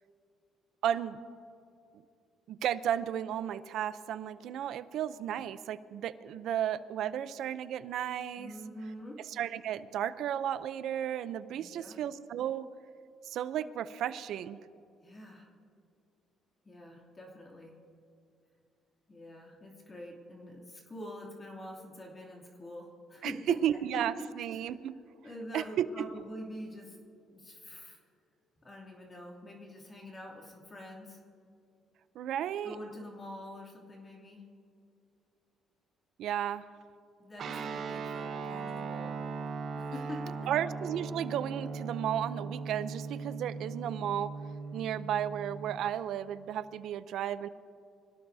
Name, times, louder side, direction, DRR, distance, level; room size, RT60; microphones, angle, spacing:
voice 1, 0.8-1.2 2.5-8.5 9.3-12.7 13.3-14.6 23.2-24.9 25.5-25.9 32.1-32.7 36.2-36.6 40.5-44.3 44.7-47.5, right 10 dB, 70° right, 14 dB, 0.6 m, -33 dB
voice 2, 8.4-9.2 11.5-12.0 15.0-15.5 16.6-17.7 19.1-23.6 23.9-24.0 24.5-24.7 25.2-27.0 27.3-28.0 28.6-31.2 32.6-34.4 37.2-39.2 39.8-40.4, left 1 dB, 30° left, -2 dB, 2.8 m, -45 dB
Guitar, 37.4-45.9, right 4 dB, 55° right, 1.3 m, -39 dB
25.5 x 17.0 x 2.8 m, 2.5 s
cardioid pair, 110°, 0 cm